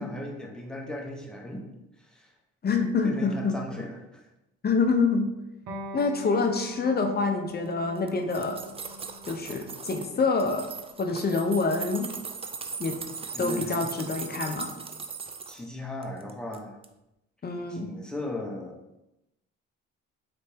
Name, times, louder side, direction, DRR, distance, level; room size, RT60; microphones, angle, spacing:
voice 1, 0.0-1.7 2.0-2.3 3.0-4.2 13.3-13.9 15.5-16.8 17.7-18.8, left 1 dB, 5° left, -1 dB, 0.9 m, -37 dB
voice 2, 2.6-3.6 4.6-5.3 5.9-8.6 9.3-10.7 11.0-12.1 12.8-13.0 13.4-14.7 17.4-17.9, left 4 dB, 30° left, 4 dB, 0.6 m, -26 dB
Electric guitar, 5.7-12.8, equal, 80° right, 1.0 m, -44 dB
sound 1, 8.0-10.1 10.4-15.6 16.0-16.6 16.8-16.9, right 5 dB, 20° right, 0.3 m, -38 dB
3.9 x 3.4 x 3.4 m, 0.90 s
cardioid pair, 90°, 30 cm